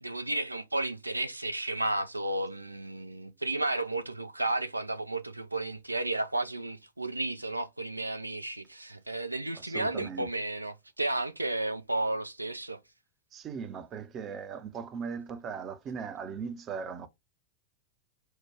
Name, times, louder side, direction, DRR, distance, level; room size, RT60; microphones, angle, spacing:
voice 1, 0.0-12.8, right 2 dB, 85° right, 0.4 m, -33 dB
voice 2, 9.5-10.3 13.3-17.1, right 6 dB, 30° right, 0.6 m, -38 dB
4.6 x 2.2 x 4.6 m
figure-of-eight pair, 90°, 0 cm